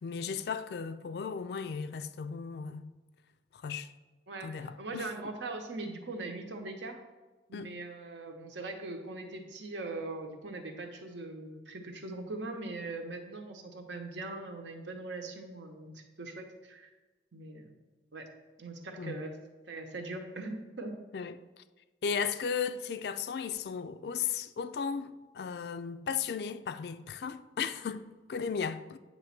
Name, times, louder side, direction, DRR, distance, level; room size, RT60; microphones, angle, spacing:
voice 1, 0.0-2.9 3.5-3.9 4.4-5.1 7.5-7.7 19.0-19.2 21.1-21.4 22.0-29.0, left 6 dB, 60° left, 0.3 m, -35 dB
voice 2, 4.3-7.0 7.5-16.9 17.3-17.7 18.1-18.3 18.6-19.3 19.7-20.9, right 2 dB, 75° right, 0.9 m, -41 dB
8.7 x 3.0 x 5.8 m
head